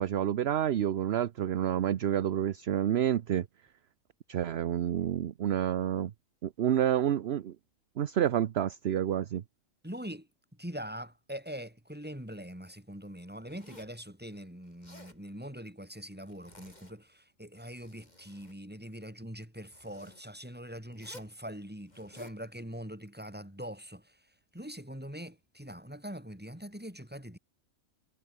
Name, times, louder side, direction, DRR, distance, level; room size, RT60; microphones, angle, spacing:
voice 1, 0.0-3.5 4.3-6.1 6.4-7.5 8.0-9.4, right 10 dB, 55° right, 0.9 m, -29 dB
voice 2, 9.8-10.3 10.6-24.1 24.5-27.4, equal, 5° right, 4.7 m, -43 dB
Zipper (clothing), 13.5-14.0 14.7-15.2 16.2-17.1 17.6-18.6 19.6-20.2 20.9-21.4 21.9-22.4, left 1 dB, 30° left, 5.0 m, -54 dB
omnidirectional pair, 1.4 m